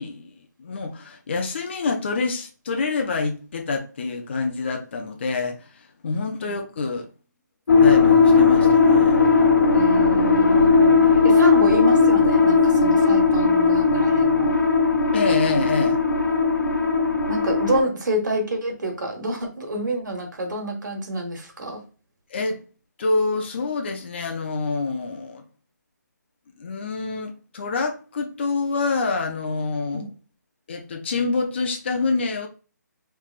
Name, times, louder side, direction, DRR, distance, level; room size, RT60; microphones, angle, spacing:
voice 1, 0.0-7.1 7.8-9.3 15.1-16.0 22.3-22.6 23.0-25.4 26.6-30.1 30.7-32.5, left 3 dB, 35° left, 0.5 m, -27 dB
sound 1, 7.7-17.8, left 4 dB, 75° left, 0.9 m, -17 dB
voice 2, 9.7-14.5 17.3-21.8 29.9-30.1, right 1 dB, 80° right, 1.4 m, -28 dB
3.3 x 3.2 x 2.3 m
hypercardioid pair, 170°, 10 cm